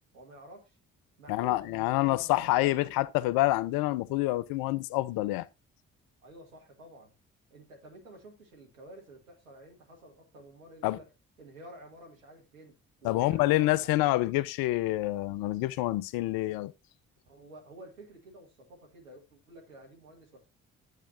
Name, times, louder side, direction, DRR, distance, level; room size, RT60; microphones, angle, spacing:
voice 1, 0.1-0.8 1.2-2.8 6.2-7.1 7.5-11.1 11.4-14.3 17.3-20.5, right 1 dB, 85° right, 1.9 m, -51 dB
voice 2, 1.3-5.5 10.8-11.0 13.0-16.7, left 17 dB, 60° left, 0.6 m, -27 dB
10.0 x 7.4 x 2.7 m
figure-of-eight pair, 40°, 40 cm